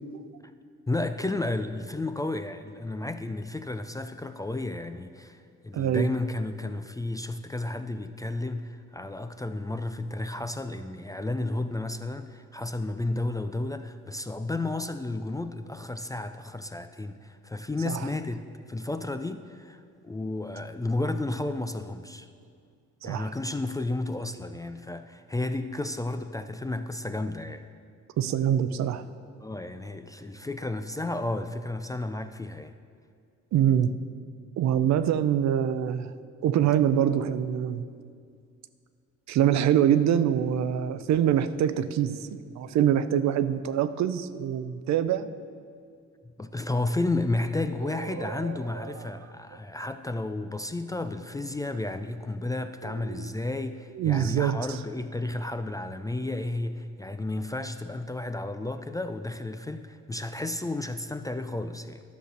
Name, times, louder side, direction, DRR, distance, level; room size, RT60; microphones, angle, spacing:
voice 1, 0.9-22.3 23.0-27.6 29.4-32.7 46.4-62.0, left 2 dB, 10° left, 9 dB, 0.3 m, -32 dB
voice 2, 5.7-6.1 17.9-18.1 23.0-23.3 28.2-29.0 33.5-33.9 34.6-36.1 36.4-37.8 39.3-45.3 47.8-49.1 52.8-53.3 54.0-54.8, right 10 dB, 65° right, 13 dB, 0.5 m, -25 dB
11.5 x 4.9 x 6.5 m, 2.2 s
cardioid pair, 90°, 30 cm